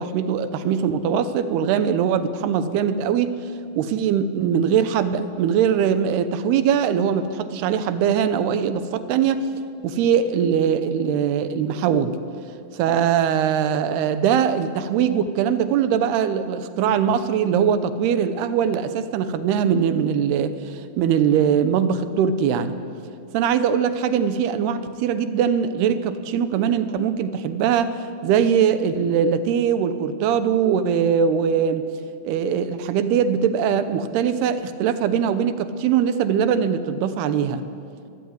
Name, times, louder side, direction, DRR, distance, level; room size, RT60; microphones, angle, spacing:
voice 1, 0.0-3.4 3.8-9.5 9.8-12.2 12.7-22.8 23.3-31.9 32.2-37.6, right 8 dB, 75° right, 12 dB, 2.8 m, -21 dB
23.5 x 14.5 x 9.7 m, 2.4 s
omnidirectional pair, 5.1 m